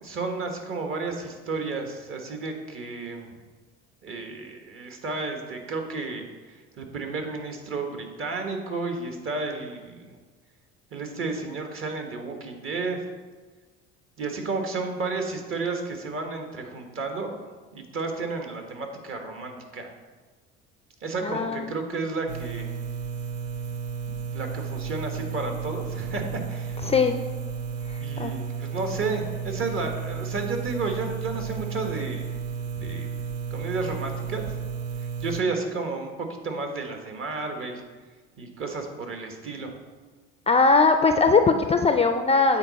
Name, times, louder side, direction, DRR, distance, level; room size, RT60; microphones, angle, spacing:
voice 1, 0.0-3.4 4.0-10.1 10.9-13.0 14.2-17.5 17.7-19.9 21.0-22.7 24.1-26.8 28.0-32.3 32.8-33.1 33.5-34.4 35.2-37.8 38.4-39.7, right 3 dB, 45° right, 4 dB, 1.4 m, -32 dB
voice 2, 21.2-21.6 26.9-27.1 28.2-28.3 40.5-42.6, left 4 dB, 20° left, 7 dB, 0.4 m, -20 dB
sound 1, 22.3-35.4, right 6 dB, 85° right, 0.6 m, -33 dB
8.9 x 4.1 x 4.1 m, 1.4 s
supercardioid pair, 90°, 29 cm